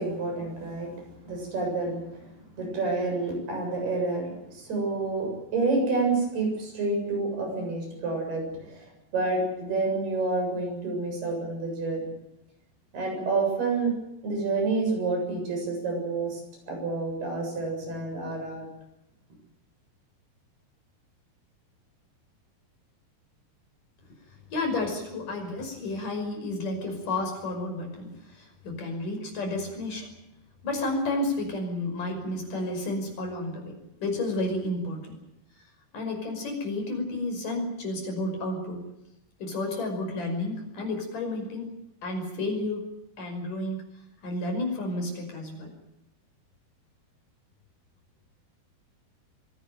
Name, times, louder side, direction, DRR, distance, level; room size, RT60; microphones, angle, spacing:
voice 1, 0.0-2.2 2.6-12.1 12.9-13.9 14.2-16.4 16.7-18.7, right 3 dB, 75° right, 2 dB, 9.5 m, -29 dB
voice 2, 24.5-30.1 30.6-35.2 35.9-38.9 39.4-41.8 42.0-42.8 43.2-43.8 44.2-45.7, left 2 dB, 55° left, 3 dB, 7.1 m, -31 dB
24.0 x 18.0 x 9.3 m, 0.85 s
omnidirectional pair, 4.6 m